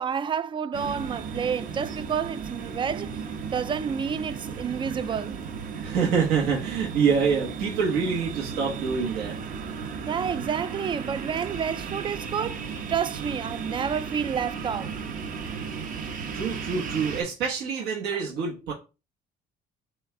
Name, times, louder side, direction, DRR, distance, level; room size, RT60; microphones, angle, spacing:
voice 1, 0.0-5.3 10.1-14.9 18.1-18.2, right 7 dB, 30° right, 0.3 m, -30 dB
sound 1, 0.7-17.2, right 5 dB, 55° right, 0.9 m, -35 dB
voice 2, 5.8-9.3 16.3-18.7, right 6 dB, 80° right, 1.1 m, -26 dB
6.3 x 2.3 x 3.7 m
cardioid pair, 110°, 17 cm